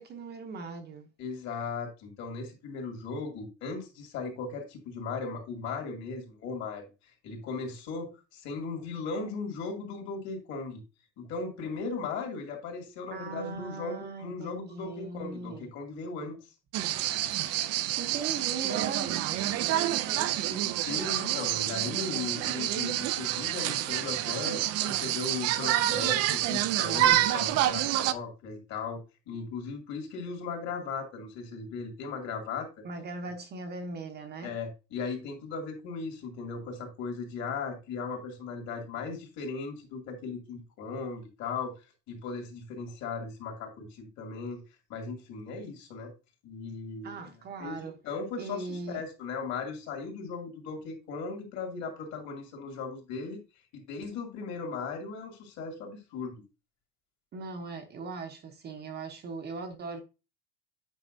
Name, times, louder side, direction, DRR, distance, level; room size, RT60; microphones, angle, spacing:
voice 1, 0.0-1.1 13.1-15.7 18.0-21.4 32.8-34.5 47.0-47.9 48.4-49.0 57.3-60.0, right 4 dB, 30° right, 0.9 m, -39 dB
voice 2, 1.2-6.8 7.2-10.8 11.2-16.4 20.9-29.0 29.3-32.7 34.4-41.7 42.1-44.6 44.9-46.1 46.4-47.2 47.6-53.4 53.7-56.3, left 4 dB, 45° left, 2.6 m, -37 dB
sound 1, 16.7-28.1, right 13 dB, 45° right, 0.5 m, -28 dB
9.0 x 5.5 x 2.6 m
cardioid pair, 155°, 36 cm